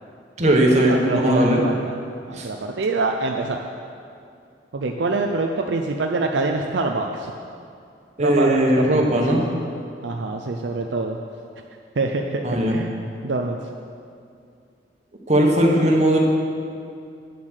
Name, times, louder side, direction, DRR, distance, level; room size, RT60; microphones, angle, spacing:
voice 1, 0.4-1.6 2.3-2.5 8.2-9.4 12.4-12.8 15.3-16.2, right 1 dB, 40° right, -1 dB, 1.4 m, -18 dB
voice 2, 0.9-1.9 2.2-3.6 4.7-7.3 8.2-9.2 10.0-11.2 12.0-13.0 13.2-13.6, right 3 dB, 70° right, 3 dB, 0.6 m, -25 dB
9.6 x 7.3 x 6.4 m, 2.4 s
head